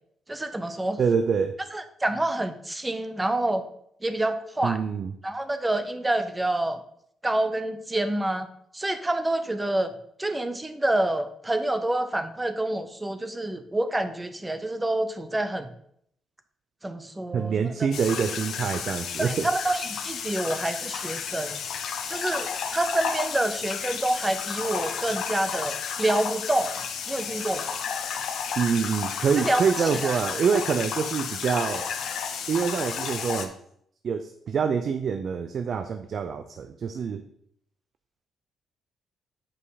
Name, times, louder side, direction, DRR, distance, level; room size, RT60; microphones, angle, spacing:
voice 1, 0.3-1.0 1.7-3.6 4.0-4.8 5.2-6.8 7.2-8.5 8.7-9.9 10.2-15.7 16.8-17.7 19.2-21.6 22.1-27.7 29.4-29.6 30.0-30.2, right 1 dB, 15° right, 10 dB, 0.7 m, -27 dB
voice 2, 1.0-1.5 4.6-5.1 17.3-19.5 28.6-31.9 32.5-33.5 34.0-37.2, right 6 dB, 50° right, 8 dB, 0.5 m, -26 dB
sound 1, 17.9-33.5, left 7 dB, 70° left, 0.9 m, -32 dB
7.4 x 5.2 x 4.1 m, 0.68 s
cardioid pair, 115°, 0 cm